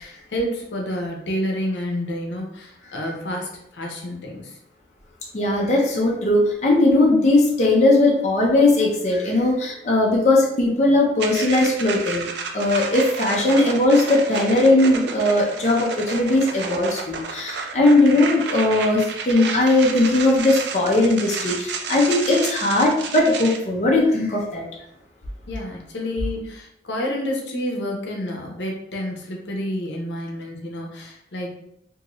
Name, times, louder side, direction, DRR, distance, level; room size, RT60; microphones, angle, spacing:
voice 1, 0.0-4.6 25.5-31.5, left 1 dB, 85° left, 0 dB, 0.7 m, -29 dB
voice 2, 5.3-12.3 12.5-24.6, left 2 dB, 40° left, -2 dB, 0.5 m, -19 dB
sound 1, 11.2-23.6, right 5 dB, 75° right, 0.4 m, -31 dB
2.6 x 2.5 x 3.0 m, 0.76 s
head